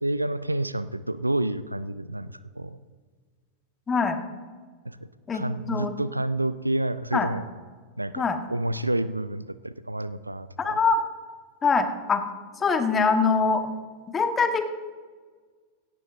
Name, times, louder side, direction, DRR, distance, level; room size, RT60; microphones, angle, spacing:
voice 1, 0.0-2.8 4.8-7.4 8.0-10.8, right 1 dB, 85° right, 15 dB, 0.4 m, -29 dB
voice 2, 3.9-4.2 5.3-5.9 7.1-7.3 8.2-8.4 10.6-11.0 11.6-12.2 12.6-13.6 14.1-14.6, left 4 dB, 20° left, 7 dB, 1.3 m, -23 dB
17.0 x 15.0 x 2.6 m, 1.5 s
figure-of-eight pair, 90°, 0 cm